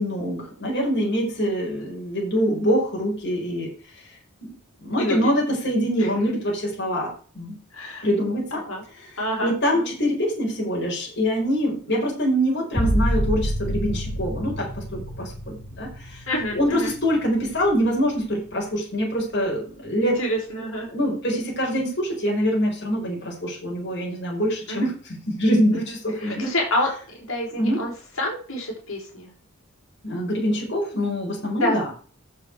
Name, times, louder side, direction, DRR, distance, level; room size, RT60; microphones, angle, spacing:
voice 1, 0.0-3.7 4.4-4.5 4.8-7.1 7.3-7.6 8.0-8.6 9.4-16.2 16.5-20.2 20.9-24.9 25.3-26.5 27.5-27.8 30.0-31.8, equal, 50° left, -2 dB, 5.0 m, -24 dB
voice 2, 5.0-5.3 6.0-6.1 7.7-8.1 8.5-8.8 9.2-9.9 16.3-16.9 20.0-20.9 24.7-24.9 25.7-29.3 31.6-31.8, left 1 dB, 70° left, -1 dB, 5.1 m, -28 dB
sound 1, 12.7-18.2 18.7-19.3, equal, 30° left, 1.6 m, -28 dB
11.5 x 7.6 x 4.8 m, 0.41 s
head